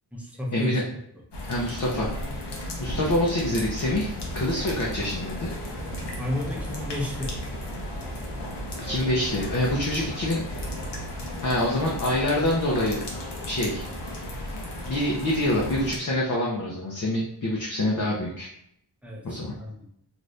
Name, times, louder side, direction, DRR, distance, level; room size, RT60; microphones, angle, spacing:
voice 1, 0.1-1.0 6.2-7.4 19.0-19.9, left 1 dB, 5° right, -3 dB, 0.7 m, -32 dB
sound 1, 1.3-16.0, left 1 dB, 75° left, 0.8 m, -35 dB
voice 2, 1.5-2.5 2.8-5.5 8.8-10.4 11.4-13.0 13.4-13.9 14.8-18.5 19.2-19.5, left 1 dB, 45° left, -4 dB, 0.7 m, -26 dB
sound 2, 2.8-11.1, right 2 dB, 90° right, 1.0 m, -40 dB
2.7 x 2.5 x 3.2 m, 0.73 s
wide cardioid pair, 95°, 41 cm